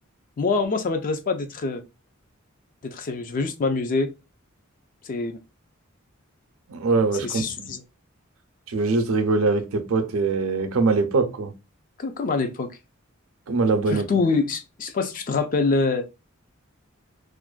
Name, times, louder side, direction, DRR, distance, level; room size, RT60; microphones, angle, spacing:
voice 1, 0.4-1.8 2.8-4.1 5.0-5.4 7.2-7.8 12.0-12.7 13.9-16.1, left 4 dB, 40° left, 0.4 m, -25 dB
voice 2, 6.7-7.7 8.7-11.5 13.5-14.1, right 3 dB, 75° right, 0.5 m, -22 dB
2.4 x 2.1 x 2.3 m
head